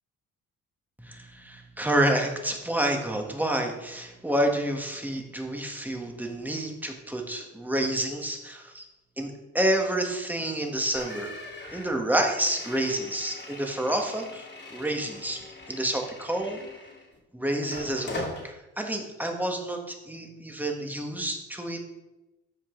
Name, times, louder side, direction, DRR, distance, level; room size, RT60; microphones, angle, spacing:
voice 1, 1.0-8.8 9.2-11.3 11.7-14.5 14.7-15.4 15.7-16.6 17.3-21.8, right 1 dB, 5° right, 2 dB, 1.8 m, -29 dB
sound 1, 11.0-17.2 17.6-18.5, left 2 dB, 35° left, 2.4 m, -41 dB
13.5 x 5.4 x 3.9 m, 1.0 s
cardioid pair, 90°, 30 cm